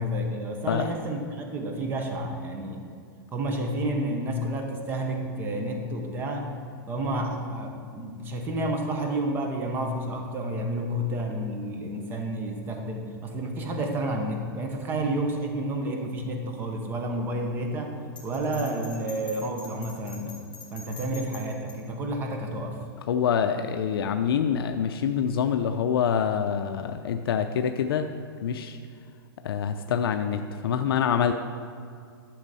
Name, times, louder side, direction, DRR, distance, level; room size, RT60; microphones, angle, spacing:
voice 1, 0.0-2.8 3.3-6.5 6.9-18.0 18.2-20.4 20.7-22.8, right 1 dB, 15° right, 3 dB, 0.8 m, -30 dB
Bell, 18.2-21.8, left 4 dB, 10° left, 2.2 m, -44 dB
voice 2, 23.1-28.1 28.4-28.8 29.4-31.3, left 7 dB, 75° left, 7 dB, 0.5 m, -26 dB
11.5 x 6.3 x 4.1 m, 2.3 s
hypercardioid pair, 160°, 13 cm